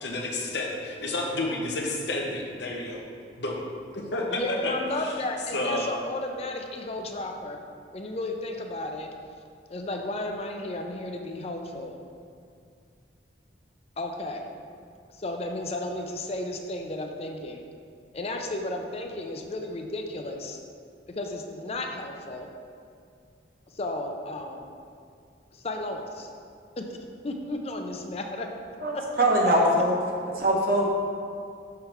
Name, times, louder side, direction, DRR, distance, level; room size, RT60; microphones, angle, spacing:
voice 1, 0.0-3.0 3.4-3.7 3.9-5.1 5.5-5.9, left 2 dB, 70° left, -1 dB, 1.0 m, -30 dB
voice 2, 4.3-7.6 7.9-9.1 9.7-12.0 14.0-14.5 15.1-17.6 18.1-20.6 21.1-22.5 23.7-24.7 25.5-26.3 26.8-27.0 27.2-28.6 28.9-29.0, left 2 dB, 35° left, 3 dB, 0.5 m, -33 dB
voice 3, 28.8-29.9 30.4-30.8, right 1 dB, 55° right, -1 dB, 1.0 m, -22 dB
6.7 x 3.3 x 5.7 m, 2.3 s
head